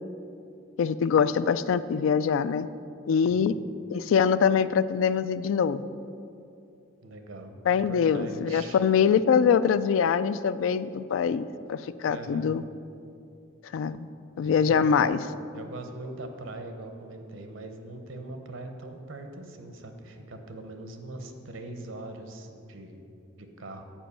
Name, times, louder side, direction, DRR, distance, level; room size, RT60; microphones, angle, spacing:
voice 1, 0.8-2.7 3.1-3.5 3.9-5.8 7.7-12.6 13.7-14.1 14.4-15.2, left 7 dB, 75° left, 14 dB, 0.3 m, -24 dB
voice 2, 7.0-9.1 12.1-12.6 14.4-15.0 15.5-23.0 23.4-23.8, right 2 dB, 75° right, 6 dB, 0.8 m, -41 dB
7.3 x 5.1 x 6.9 m, 2.5 s
head